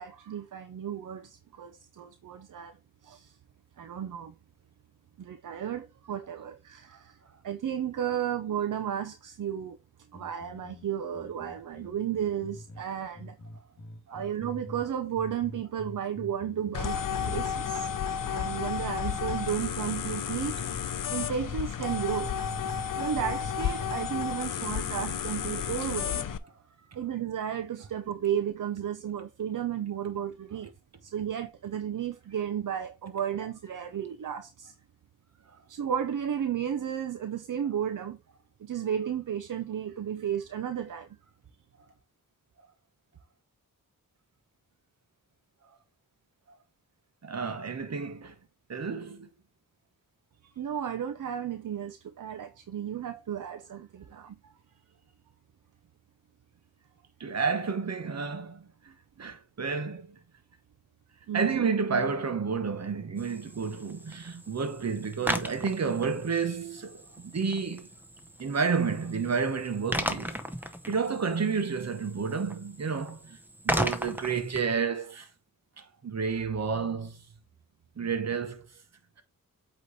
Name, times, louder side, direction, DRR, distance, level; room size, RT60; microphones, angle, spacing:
voice 1, 0.0-2.8 3.0-3.3 3.8-4.3 5.2-7.1 7.4-9.8 10.1-13.4 14.1-17.9 18.3-20.6 21.1-22.3 22.7-26.4 26.9-30.7 31.0-34.7 35.7-38.2 38.6-41.1 50.6-54.4 61.3-61.6, right 9 dB, 65° right, 0.7 m, -33 dB
sound 1, 10.1-12.8 13.1-14.9 15.1-20.8 21.1-22.9 23.1-24.3, left 1 dB, 40° left, 1.8 m, -45 dB
sound 2, 16.7-26.4, left 8 dB, 70° left, 0.6 m, -32 dB
voice 2, 47.2-48.3 48.7-49.3 57.2-60.2 61.3-67.9 68.4-70.4 70.9-73.4 73.6-75.3 75.8-77.2 78.0-78.7, right 5 dB, 50° right, 1.2 m, -31 dB
sound 3, 63.2-74.6, equal, 5° right, 0.8 m, -37 dB
8.3 x 3.2 x 4.1 m
wide cardioid pair, 95°, 33 cm